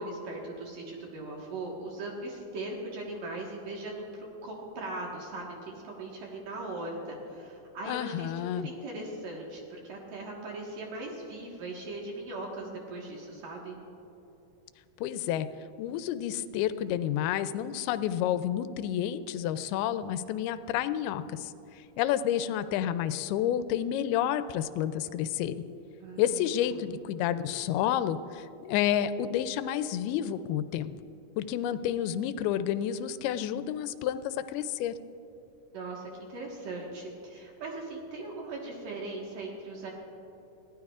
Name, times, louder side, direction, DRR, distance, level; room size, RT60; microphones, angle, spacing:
voice 1, 0.0-13.8 26.0-26.4 35.7-39.9, right 2 dB, 60° right, -2 dB, 2.9 m, -39 dB
voice 2, 7.9-8.7 15.0-15.5 15.8-25.6 26.2-30.9 31.4-34.9, left 10 dB, 85° left, 12 dB, 2.4 m, -30 dB
22.0 x 15.5 x 2.4 m, 3.0 s
omnidirectional pair, 4.5 m